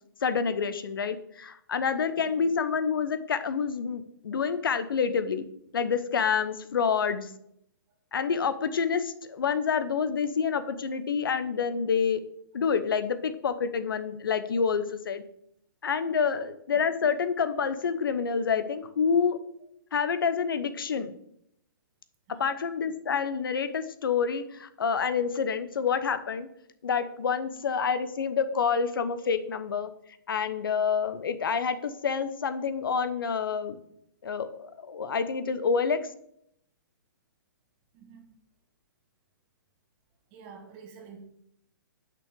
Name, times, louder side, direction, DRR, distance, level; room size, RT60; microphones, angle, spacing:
voice 1, 0.2-5.4 5.7-7.3 8.1-12.2 12.5-15.2 15.8-19.4 19.9-21.1 22.4-26.5 26.8-29.9 30.3-33.8 34.2-36.0, left 6 dB, 80° left, 0.8 m, -28 dB
voice 2, 2.2-2.5 16.2-16.4 22.3-22.6 27.5-27.6 37.9-38.3 40.3-41.2, right 5 dB, 30° right, 1.6 m, -49 dB
8.6 x 6.1 x 3.7 m
hypercardioid pair, 145°, 12 cm